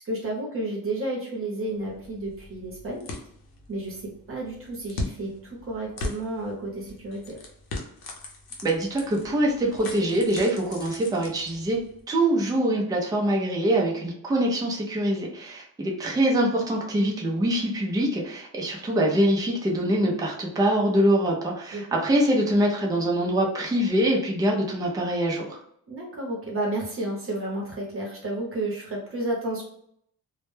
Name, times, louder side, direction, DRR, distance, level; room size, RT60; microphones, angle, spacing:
voice 1, 0.0-3.1 3.7-4.0 4.3-7.4 21.7-21.8 25.9-29.6, right 1 dB, 40° right, -2 dB, 0.7 m, -31 dB
sound 1, 1.7-12.0, left 2 dB, 85° left, 0.7 m, -40 dB
voice 2, 8.6-11.8 12.1-25.6, right 1 dB, 10° right, -2 dB, 0.4 m, -24 dB
2.1 x 2.1 x 3.0 m, 0.70 s
wide cardioid pair, 170°, 35 cm